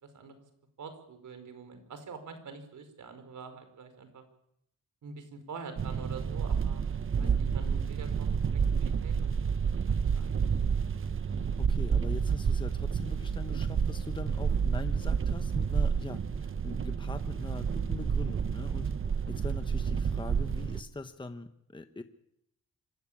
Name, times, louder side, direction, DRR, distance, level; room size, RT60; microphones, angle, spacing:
voice 1, 0.0-0.3 0.8-4.2 5.0-9.3 9.8-10.9, right 5 dB, 75° right, 9 dB, 4.9 m, -46 dB
sound 1, 5.8-20.8, right 6 dB, 45° right, 1.0 m, -30 dB
voice 2, 11.6-18.9 19.3-22.0, left 2 dB, 15° left, 8 dB, 1.1 m, -42 dB
25.0 x 15.5 x 8.7 m, 0.77 s
wide cardioid pair, 115°, 30 cm